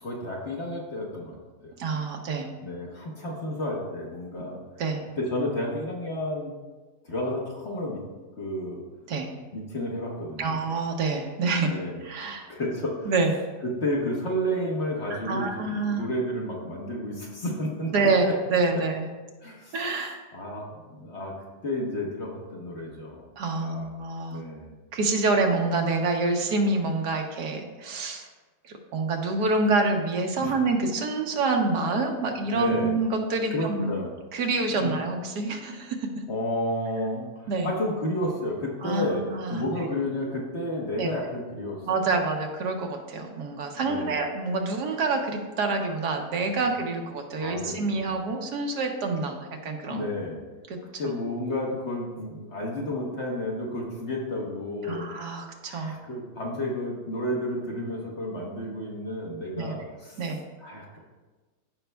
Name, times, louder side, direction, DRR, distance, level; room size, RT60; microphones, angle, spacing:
voice 1, 0.0-1.4 1.6-1.7 2.6-4.6 5.2-6.5 7.0-8.0 8.4-8.8 9.5-10.5 11.6-13.1 13.6-17.9 18.2-18.3 18.7-18.8 19.4-19.8 20.3-21.3 21.6-23.2 23.5-23.9 24.3-24.7 30.4-30.6 32.5-33.0 33.5-34.1 34.8-34.9 36.3-42.0 43.7-44.3 46.6-46.7 47.4-48.0 49.8-50.4 51.0-55.0 55.7-60.3 60.6-61.0, left 1 dB, 45° left, -2 dB, 1.4 m, -31 dB
voice 2, 1.8-2.5 4.8-5.0 9.1-9.3 10.4-11.7 12.0-12.5 13.0-13.3 15.1-16.1 17.9-19.0 19.7-20.2 23.4-24.4 24.9-28.3 28.6-33.9 34.3-36.3 37.5-37.7 38.8-39.6 41.0-41.1 41.9-50.1 50.7-50.8 51.0-51.1 54.8-56.0 59.5-59.8 60.2-60.4, right 3 dB, 80° right, 3 dB, 1.5 m, -27 dB
14.5 x 5.4 x 2.3 m, 1.3 s
omnidirectional pair, 1.8 m